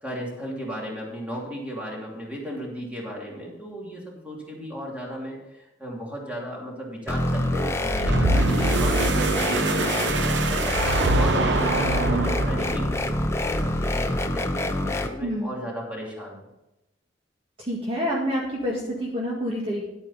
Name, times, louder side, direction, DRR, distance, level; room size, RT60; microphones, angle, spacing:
voice 1, 0.0-13.1 13.4-16.4, equal, 5° right, -3 dB, 2.9 m, -36 dB
sound 1, 7.1-15.1, left 1 dB, 15° left, 0.8 m, -26 dB
sound 2, 7.9-13.0, right 2 dB, 80° right, 1.0 m, -24 dB
sound 3, 12.4-14.2, left 1 dB, 40° left, 1.1 m, -35 dB
voice 2, 15.2-15.5 17.6-19.9, equal, 30° right, -3 dB, 1.9 m, -28 dB
11.0 x 8.8 x 4.2 m, 0.94 s
head